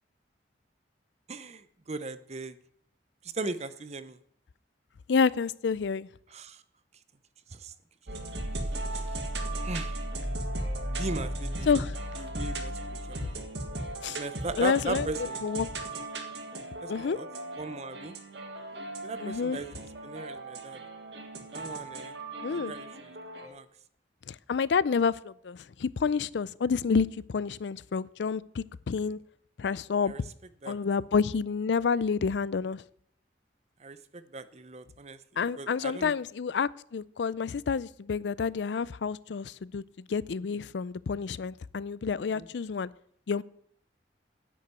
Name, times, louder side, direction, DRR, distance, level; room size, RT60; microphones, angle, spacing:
voice 1, 1.3-2.6 3.3-4.2 6.3-6.6 7.5-7.7 8.9-9.2 9.6-10.0 10.9-11.7 12.2-13.4 14.1-15.4 16.8-17.3 17.6-18.1 19.0-19.7 20.0-20.8 21.5-22.1 22.5-23.1 23.4-23.7 30.1-30.2 30.6-30.8 33.8-35.2 35.6-36.1 42.3-42.5, right 3 dB, 40° right, 13 dB, 0.8 m, -38 dB
voice 2, 5.1-6.1 11.7-11.9 14.0-14.2 14.6-15.1 15.4-15.7 16.9-17.2 19.2-19.6 22.4-22.7 24.3-29.2 29.6-30.1 30.7-32.8 35.4-39.8 40.1-42.9 43.3-43.4, left 5 dB, 75° left, 20 dB, 0.4 m, -29 dB
sound 1, 8.1-23.5, right 1 dB, 70° right, 1.7 m, -36 dB
10.0 x 8.5 x 8.2 m, 0.65 s
head